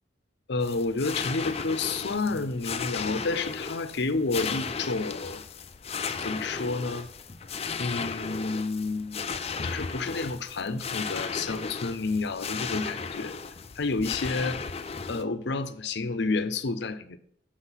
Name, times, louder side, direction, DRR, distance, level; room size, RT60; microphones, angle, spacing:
voice 1, 0.5-5.4 6.2-7.1 7.8-9.2 9.6-13.3 13.8-14.6 15.1-17.2, left 3 dB, 65° left, 12 dB, 0.7 m, -30 dB
sound 1, 0.6-15.2, left 5 dB, 35° left, 0.6 m, -35 dB
8.0 x 6.4 x 5.7 m, 0.66 s
head